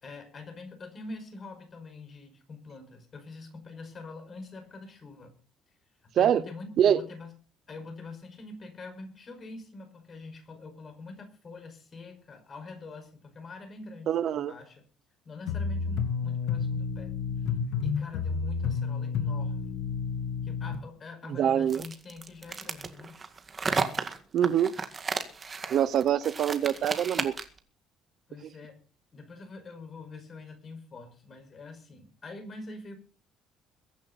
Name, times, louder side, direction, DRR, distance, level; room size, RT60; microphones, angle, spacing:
voice 1, 0.0-5.3 6.1-7.3 7.7-14.8 15.2-17.1 17.8-19.8 20.4-23.1 28.3-28.8 29.1-33.0, left 3 dB, 30° left, 6 dB, 5.4 m, -44 dB
voice 2, 14.1-14.5 21.4-21.8 24.3-24.8 25.7-27.3, right 9 dB, 50° right, 16 dB, 0.8 m, -24 dB
sound 1, 15.5-20.8, left 5 dB, 90° left, 2.0 m, -30 dB
sound 2, 21.7-27.6, right 4 dB, 25° right, 1.9 m, -33 dB
22.5 x 10.5 x 4.2 m, 0.38 s
cardioid pair, 150°, 0 cm